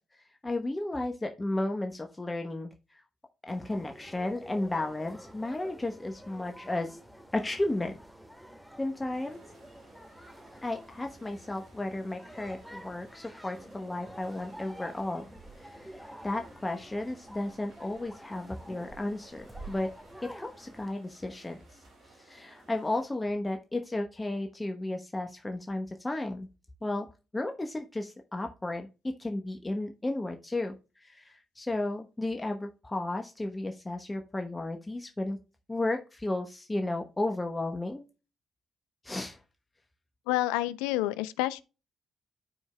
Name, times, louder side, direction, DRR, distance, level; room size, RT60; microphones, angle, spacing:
voice 1, 0.4-2.7 3.5-7.0 7.3-7.9 8.8-9.4 10.6-15.2 15.6-19.9 20.2-21.6 22.2-26.5 26.8-27.1 27.3-28.9 29.2-30.7 31.0-35.4 35.7-38.1 39.0-39.4, left 2 dB, 25° left, 1.0 m, -33 dB
sound 1, 3.5-20.9, right 1 dB, ahead, 2.0 m, -49 dB
sound 2, 9.1-23.0, right 2 dB, 75° right, 3.8 m, -58 dB
voice 2, 40.3-41.6, left 16 dB, 85° left, 0.4 m, -28 dB
13.0 x 4.6 x 2.2 m
hypercardioid pair, 45°, 0 cm